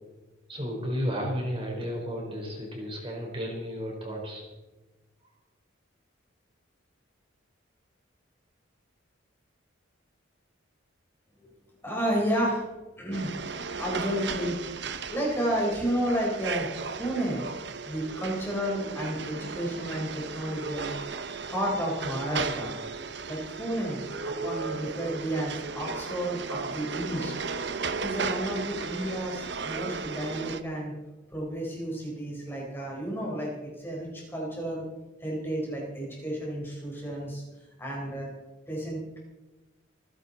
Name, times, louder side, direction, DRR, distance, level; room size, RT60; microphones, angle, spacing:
voice 1, 0.5-4.4, equal, 25° right, -1 dB, 4.3 m, -33 dB
voice 2, 11.8-12.7 13.0-13.3 13.8-14.6 15.1-16.7 17.0-17.4 17.8-20.9 21.4-22.7 23.3-27.3 28.0-30.9 31.3-34.8 35.2-37.4 37.8-38.3 38.7-39.2, right 1 dB, 10° left, -3 dB, 4.2 m, -31 dB
sound 1, 13.1-30.6, right 4 dB, 55° right, 0.9 m, -35 dB
27.0 x 11.0 x 4.2 m, 1.1 s
head